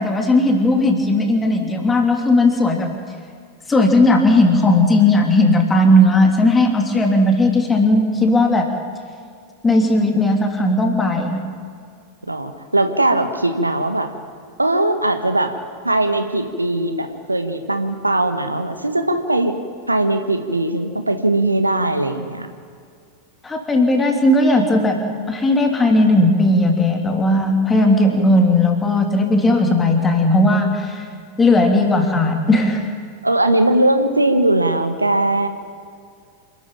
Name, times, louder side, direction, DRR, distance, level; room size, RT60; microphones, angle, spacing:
voice 1, 0.0-2.9 3.7-8.7 9.6-11.4 23.4-25.0 25.3-31.0 31.4-32.8, left 1 dB, 15° left, 3 dB, 3.1 m, -16 dB
voice 2, 12.3-14.1 14.6-15.5 15.8-19.6 19.9-22.5 33.2-35.5, right 1 dB, 85° right, 7 dB, 1.5 m, -19 dB
27.0 x 13.0 x 9.0 m, 2.2 s
figure-of-eight pair, 90°, 0 cm